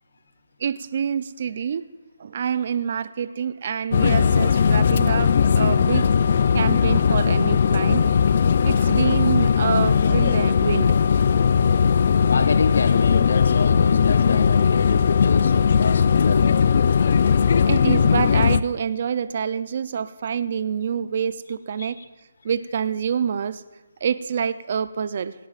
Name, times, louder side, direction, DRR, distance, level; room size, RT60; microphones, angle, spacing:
voice 1, 0.6-1.9 2.2-6.1 6.5-8.0 8.6-10.9 17.7-22.0 22.4-23.6 24.0-25.3, right 7 dB, 45° right, 14 dB, 0.5 m, -26 dB
sound 1, 3.9-18.6, left 6 dB, 45° left, 0.4 m, -18 dB
voice 2, 12.3-16.6 21.8-21.9, left 4 dB, 70° left, 10 dB, 1.0 m, -28 dB
17.0 x 17.0 x 2.5 m, 1.1 s
hypercardioid pair, 165°, 0 cm